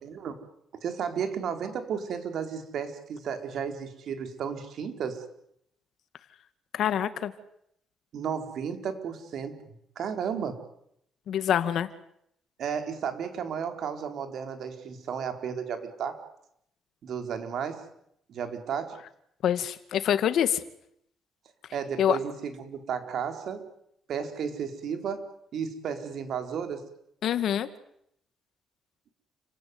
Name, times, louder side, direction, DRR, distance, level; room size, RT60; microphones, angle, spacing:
voice 1, 0.0-0.4 0.8-5.2 8.1-9.6 10.0-10.6 12.6-16.2 17.0-17.8 18.3-19.0 21.7-23.7 24.1-25.2 25.5-26.9, right 7 dB, 70° right, 7 dB, 4.3 m, -33 dB
voice 2, 6.7-7.3 11.3-11.9 19.4-20.6 22.0-22.2 27.2-27.7, left 10 dB, 70° left, 12 dB, 2.1 m, -25 dB
29.5 x 17.5 x 9.7 m, 0.75 s
cardioid pair, 90°, 0 cm